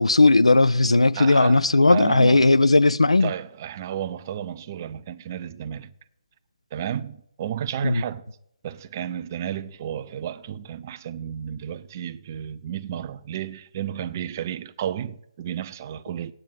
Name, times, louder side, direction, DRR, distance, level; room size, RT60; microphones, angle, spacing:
voice 1, 0.0-3.3 7.8-8.0, left 2 dB, 75° left, 0.4 m, -17 dB
voice 2, 1.1-2.5 3.2-5.9 6.7-8.2 8.6-16.3, right 10 dB, 30° right, 0.5 m, -32 dB
8.8 x 8.0 x 8.0 m
figure-of-eight pair, 140°, 3 cm